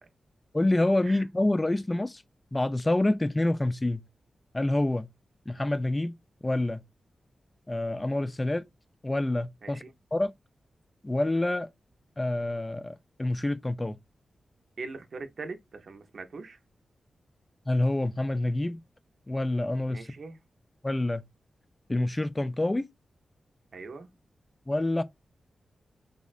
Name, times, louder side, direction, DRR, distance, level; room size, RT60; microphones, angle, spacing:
voice 1, 0.5-2.2 2.5-4.0 4.5-5.1 5.5-6.1 6.4-6.8 7.7-8.6 9.0-9.8 10.1-10.3 11.0-11.7 12.2-14.0 17.7-18.8 19.3-20.1 20.8-21.2 21.9-22.8 24.7-25.0, left 1 dB, 20° left, 0.3 m, -27 dB
voice 2, 14.8-16.6 19.9-20.4 23.7-24.1, right 3 dB, 65° right, 0.6 m, -41 dB
3.7 x 2.1 x 2.3 m
cardioid pair, 60°, 0 cm